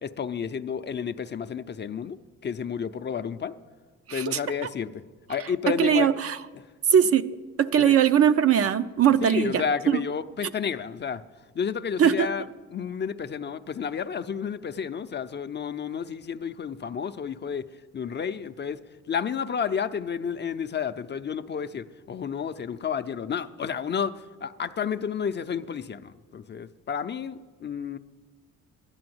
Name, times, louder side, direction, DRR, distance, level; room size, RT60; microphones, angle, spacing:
voice 1, 0.0-2.2 2.4-3.5 4.1-5.0 5.3-6.2 7.8-8.0 9.2-11.2 11.5-12.4 12.7-17.7 17.9-18.8 19.1-28.0, left 7 dB, 35° left, 10 dB, 0.5 m, -31 dB
voice 2, 4.1-4.4 5.8-6.4 6.9-7.3 7.6-10.0 12.0-12.3, right 9 dB, 50° right, 11 dB, 0.6 m, -21 dB
12.5 x 10.5 x 7.8 m, 1.4 s
cardioid pair, 90°, 30 cm